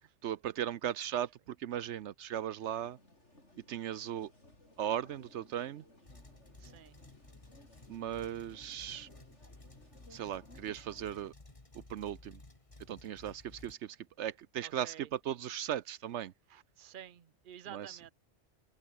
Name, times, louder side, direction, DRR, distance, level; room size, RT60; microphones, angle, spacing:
voice 1, 0.2-3.0 3.7-4.3 4.8-5.8 7.9-9.1 10.1-11.3 11.7-12.4 12.9-16.3 17.7-18.0, right 10 dB, 80° right, 1.0 m, -37 dB
sound 1, 2.6-11.3, left 1 dB, 80° left, 7.2 m, -61 dB
sound 2, 6.0-13.7, left 2 dB, 30° left, 2.3 m, -56 dB
voice 2, 6.6-7.0 14.6-15.1 16.5-18.1, right 10 dB, 50° right, 0.9 m, -51 dB
omnidirectional pair, 1.2 m